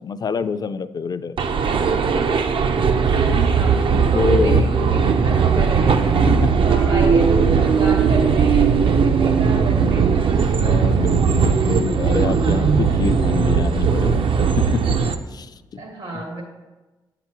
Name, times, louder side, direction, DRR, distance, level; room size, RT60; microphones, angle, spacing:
voice 1, 0.0-1.4 3.9-4.6 6.3-6.5 6.8-7.0 10.6-14.3 14.6-15.0 15.3-15.9 16.1-16.2, left 5 dB, 45° left, 12 dB, 0.3 m, -26 dB
sound 1, 1.4-15.1, right 6 dB, 65° right, 0.5 m, -18 dB
voice 2, 3.1-3.8 4.1-6.2 6.6-10.1 15.8-16.4, right 2 dB, 80° right, 1 dB, 1.4 m, -29 dB
7.7 x 5.9 x 2.9 m, 1.1 s
cardioid pair, 65°, 10 cm